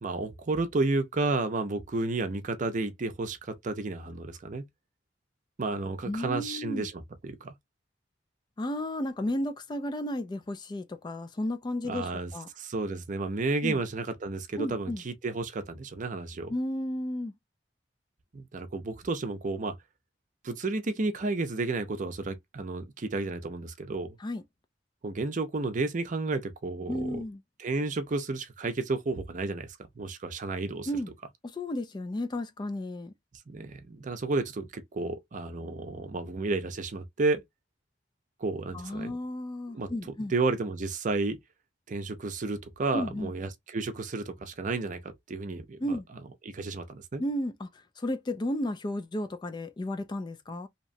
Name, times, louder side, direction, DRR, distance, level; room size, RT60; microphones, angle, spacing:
voice 1, 0.0-4.7 5.6-7.6 11.8-16.5 18.3-19.8 20.4-24.2 25.0-27.2 27.6-29.7 30.0-30.9 33.5-37.4 38.4-39.1 39.7-39.9 40.3-41.4 41.9-46.0 46.4-47.2, right 3 dB, 45° right, 0.6 m, -32 dB
voice 2, 6.1-6.9 8.6-12.5 13.6-13.8 14.6-15.0 16.5-17.3 24.2-24.4 26.9-27.4 30.9-31.1 31.4-33.1 38.7-40.3 42.9-43.3 45.8-46.1 47.2-47.7 48.0-50.7, left 1 dB, 25° left, 0.3 m, -33 dB
2.8 x 2.1 x 2.6 m
head